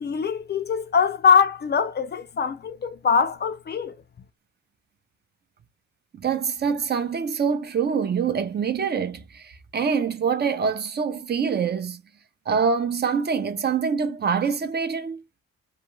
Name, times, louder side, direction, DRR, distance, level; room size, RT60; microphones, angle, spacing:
voice 1, 0.0-4.0, left 6 dB, 35° left, 0.4 m, -22 dB
voice 2, 6.1-12.0 12.5-15.4, right 6 dB, 35° right, 0.5 m, -25 dB
2.3 x 2.2 x 3.0 m
cardioid pair, 90°, 30 cm